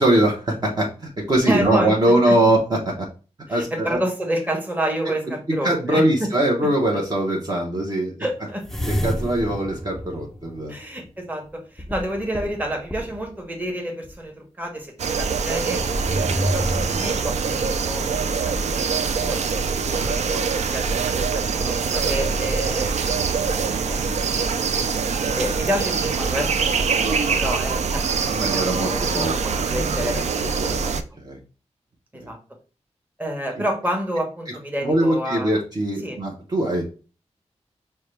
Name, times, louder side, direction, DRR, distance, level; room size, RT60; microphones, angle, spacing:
voice 1, 0.0-3.1 3.5-4.0 5.1-5.2 5.6-8.1 9.0-10.7 19.2-19.7 28.3-29.3 29.7-31.4 34.8-36.8, right 1 dB, 35° right, -1 dB, 0.8 m, -22 dB
voice 2, 1.5-2.0 2.3-2.4 3.5-6.3 8.2-8.6 10.7-15.8 16.2-18.5 18.8-24.9 25.3-30.3 30.6-30.9 32.1-32.4 33.2-35.6 36.0-36.2, equal, 15° right, 2 dB, 1.0 m, -29 dB
sound 1, 8.6-11.1 11.8-13.4 14.0-14.1 15.6-18.1, equal, 5° left, 0.4 m, -30 dB
sound 2, 15.0-31.0, right 5 dB, 75° right, 0.4 m, -24 dB
5.4 x 2.2 x 3.2 m, 0.35 s
wide cardioid pair, 120°, 12 cm